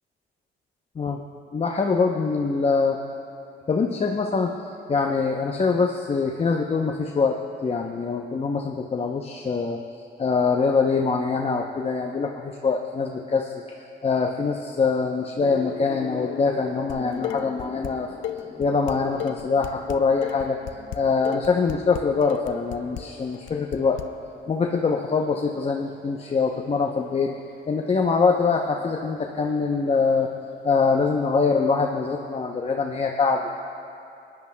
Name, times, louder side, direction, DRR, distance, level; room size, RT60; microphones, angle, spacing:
voice 1, 1.5-3.0 3.7-4.5 4.9-7.4 7.6-9.8 10.2-13.5 14.0-18.1 18.6-20.6 20.9-24.0 24.5-27.3 27.7-30.3 30.6-33.5, left 4 dB, 30° left, 1 dB, 0.7 m, -23 dB
sound 1, 15.4-31.3, left 5 dB, 60° left, 1.4 m, -43 dB
Dishes pots and pans, 16.9-17.9 18.2-24.0, left 12 dB, 75° left, 0.5 m, -34 dB
21.0 x 10.5 x 2.2 m, 2.7 s
cardioid pair, 90°, 20 cm